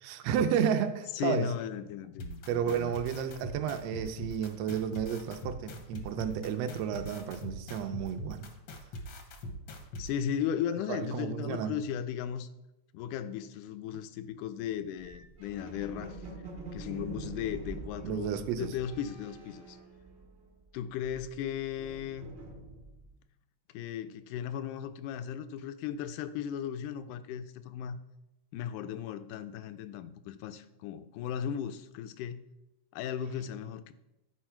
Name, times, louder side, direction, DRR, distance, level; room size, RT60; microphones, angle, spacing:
voice 1, 0.0-1.4 2.5-8.5 10.9-11.8 18.0-18.7, right 8 dB, 80° right, 1.5 m, -32 dB
voice 2, 1.2-2.9 9.5-9.6 9.9-12.5 12.9-16.2 16.7-19.8 20.7-22.3 23.7-28.0 28.5-32.4 32.9-33.9, left 9 dB, 90° left, 2.1 m, -36 dB
sound 1, 2.2-10.1, left 1 dB, 70° left, 1.2 m, -41 dB
sound 2, 15.0-20.6 20.9-23.1, right 3 dB, 50° right, 0.7 m, -46 dB
10.5 x 4.7 x 4.4 m
omnidirectional pair, 3.5 m